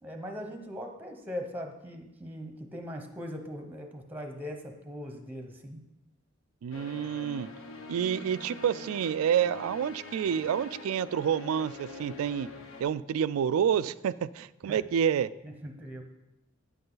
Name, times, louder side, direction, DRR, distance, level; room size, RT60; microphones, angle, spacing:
voice 1, 0.0-5.8 14.7-14.8 15.4-16.0, equal, 10° right, 4 dB, 0.8 m, -40 dB
voice 2, 6.6-7.5 7.9-12.5 12.8-15.3, right 8 dB, 90° right, 17 dB, 0.3 m, -28 dB
sound 1, 6.7-12.8, left 3 dB, 75° left, 1.0 m, -44 dB
9.5 x 7.8 x 3.9 m, 0.96 s
head